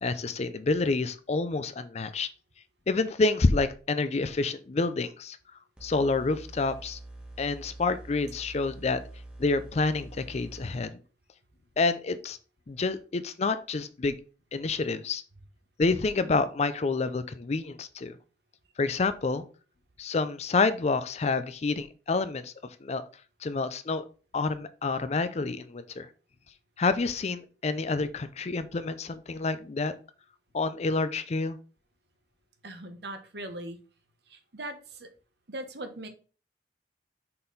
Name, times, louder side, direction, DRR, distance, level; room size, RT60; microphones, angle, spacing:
voice 1, 0.0-2.3 2.9-5.4 5.8-7.0 7.4-9.0 9.4-11.0 11.8-12.4 12.7-14.1 14.5-15.2 15.8-18.2 18.8-19.5 20.0-22.5 22.8-23.0 23.4-24.0 24.3-26.1 26.8-29.9 30.5-31.6, left 3 dB, 40° left, 13 dB, 0.4 m, -28 dB
sound 1, 5.8-10.8, right 2 dB, 5° right, 1.3 m, -45 dB
voice 2, 32.6-33.8 34.3-35.1 35.5-36.1, right 1 dB, 65° right, 7 dB, 1.0 m, -40 dB
5.7 x 4.2 x 3.9 m, 0.37 s
head